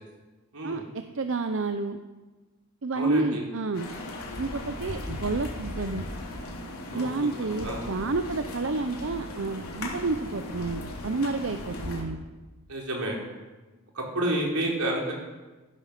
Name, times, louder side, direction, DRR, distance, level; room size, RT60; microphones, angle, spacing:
voice 1, 0.6-2.0 2.8-3.9 4.4-6.0 6.9-12.2, right 3 dB, 60° right, 8 dB, 0.7 m, -30 dB
voice 2, 2.9-3.4 6.9-7.1 7.6-7.9 12.7-13.2 13.9-15.1, right 1 dB, 80° right, -1 dB, 4.0 m, -29 dB
sound 1, 3.7-12.0, left 1 dB, 80° left, 3.2 m, -37 dB
15.0 x 11.0 x 6.8 m, 1.2 s
head